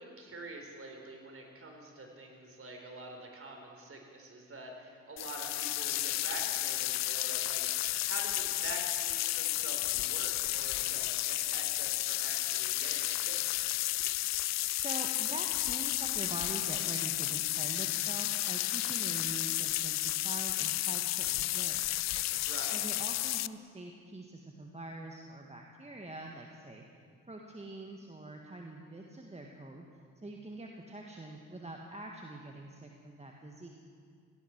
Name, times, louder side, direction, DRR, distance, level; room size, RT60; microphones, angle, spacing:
voice 1, 0.0-13.4 22.5-22.8, right 2 dB, 35° right, 2 dB, 4.3 m, -46 dB
sound 1, 5.2-23.5, left 16 dB, 45° left, 0.4 m, -32 dB
voice 2, 14.8-22.1 22.7-26.8 27.3-29.9 30.2-33.7, right 2 dB, 15° right, 1 dB, 1.6 m, -44 dB
17.0 x 16.5 x 4.6 m, 2.2 s
hypercardioid pair, 45°, 38 cm